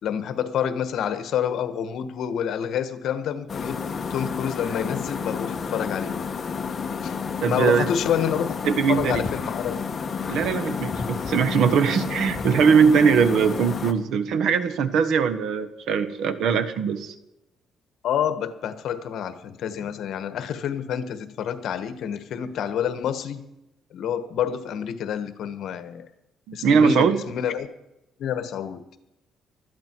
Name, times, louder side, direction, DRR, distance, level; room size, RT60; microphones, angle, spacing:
voice 1, 0.0-6.2 7.0-7.1 7.5-8.6 8.9-9.8 18.0-23.5 23.9-26.1 26.5-27.7 28.2-28.8, left 8 dB, 65° left, 11 dB, 1.4 m, -28 dB
sound 1, 3.5-13.9, left 5 dB, 35° left, 1.2 m, -30 dB
voice 2, 7.4-7.9 8.6-9.2 10.3-17.1 26.5-27.2, right 6 dB, 70° right, 11 dB, 1.3 m, -21 dB
20.0 x 13.5 x 4.6 m, 0.90 s
cardioid pair, 130°, 0 cm